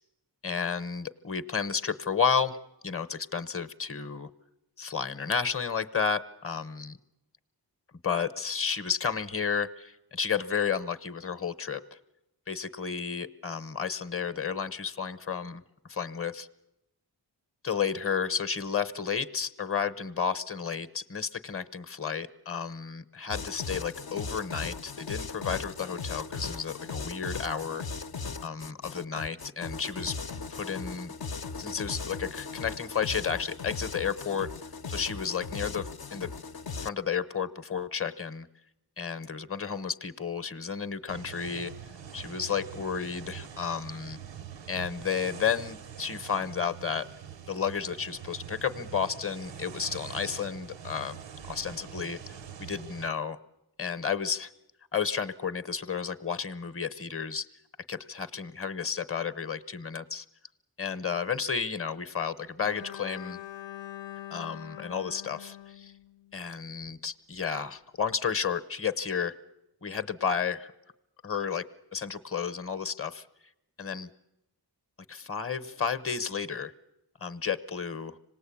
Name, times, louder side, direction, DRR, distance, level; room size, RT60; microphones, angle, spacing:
voice 1, 0.4-4.3 4.8-7.0 8.0-12.0 12.5-15.6 15.9-16.5 17.6-27.8 28.4-30.2 30.5-31.1 31.6-34.5 34.9-36.3 36.8-38.5 39.0-41.7 42.1-44.2 44.7-47.1 47.5-51.2 51.5-53.4 53.8-54.5 54.9-57.5 57.9-60.2 60.8-63.4 64.3-65.9 66.3-69.4 69.8-70.7 71.2-73.2 73.8-74.1 75.1-76.7 77.2-78.2, left 6 dB, 30° left, 13 dB, 0.9 m, -32 dB
sound 1, 23.3-36.9, left 4 dB, 55° left, 0.8 m, -38 dB
sound 2, 41.1-53.1, right 8 dB, 80° right, 0.8 m, -44 dB
Bowed string instrument, 62.6-66.7, left 12 dB, 85° left, 0.9 m, -44 dB
26.0 x 18.5 x 8.5 m, 0.91 s
wide cardioid pair, 75°, 43 cm